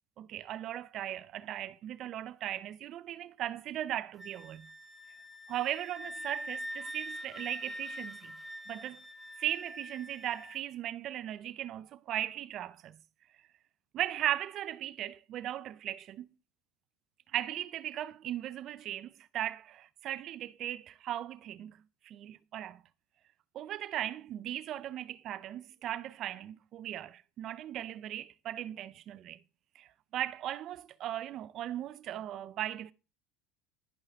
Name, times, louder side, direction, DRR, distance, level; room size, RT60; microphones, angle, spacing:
voice 1, 0.2-4.7 5.5-8.3 8.7-9.0 9.4-13.0 13.9-16.3 17.3-22.8 23.5-29.4 29.8-32.9, right 12 dB, 45° right, 0.4 m, -38 dB
Wind instrument woodwind instrument, 4.2-10.6, equal, 10° left, 0.9 m, -44 dB
10.5 x 5.6 x 3.5 m
supercardioid pair, 115°, 0 cm